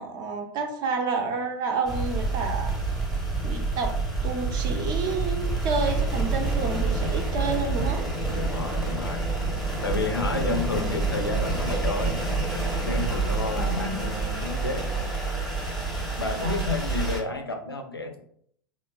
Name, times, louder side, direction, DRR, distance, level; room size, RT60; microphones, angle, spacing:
voice 1, 0.0-2.7 3.4-3.9 4.2-8.0 10.4-10.9 13.5-14.1 16.4-16.6, right 4 dB, 35° right, 3 dB, 0.4 m, -30 dB
sound 1, 1.8-17.2, right 3 dB, ahead, 0.7 m, -27 dB
voice 2, 8.3-9.3 9.8-12.2 12.8-15.2 16.2-18.2, left 3 dB, 90° left, 5 dB, 0.4 m, -31 dB
3.0 x 2.0 x 2.2 m, 0.65 s
figure-of-eight pair, 85°, 12 cm